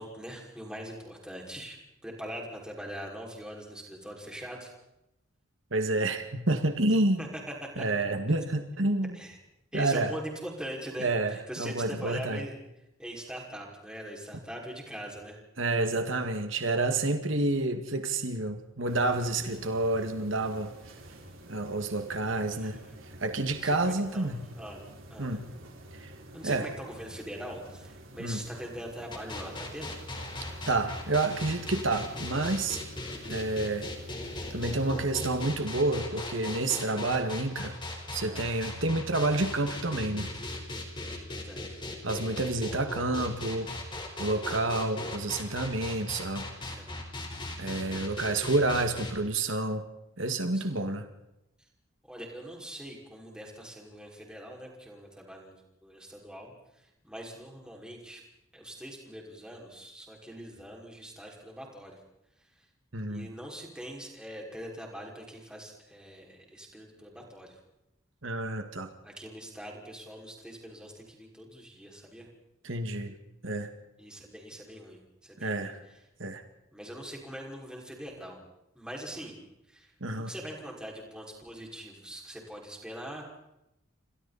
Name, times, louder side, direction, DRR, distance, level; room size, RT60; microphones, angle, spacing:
voice 1, 0.0-4.7 7.2-7.9 9.1-9.4 9.7-12.6 13.0-15.4 19.4-19.6 22.5-22.8 23.5-24.8 25.1-25.4 26.3-30.0 38.2-38.5 41.4-41.7 46.6-47.0 50.5-50.8 52.1-58.2 58.5-62.0 62.4-62.6 63.1-67.6 69.0-72.3 74.0-76.0 76.7-78.4 78.7-79.4 79.7-79.9 80.2-83.3, equal, 5° right, -1 dB, 5.7 m, -42 dB
voice 2, 5.7-7.2 7.8-9.2 9.7-10.1 11.0-12.4 15.6-20.7 21.5-22.8 23.2-24.4 25.2-25.4 26.0-26.1 26.4-26.7 28.2-28.4 30.7-32.8 33.3-33.9 34.5-37.7 38.1-40.3 42.0-43.7 44.2-46.4 47.6-49.9 50.2-51.0 62.9-63.3 68.2-68.9 72.6-73.1 73.4-73.7 75.4-75.8 76.2-76.4 80.0-80.3, right 2 dB, 70° right, 6 dB, 2.1 m, -29 dB
sound 1, 18.8-35.5, right 1 dB, 85° right, 5.8 m, -50 dB
sound 2, 29.1-49.1, left 2 dB, 25° left, 4.5 m, -38 dB
29.5 x 26.0 x 4.3 m, 0.88 s
head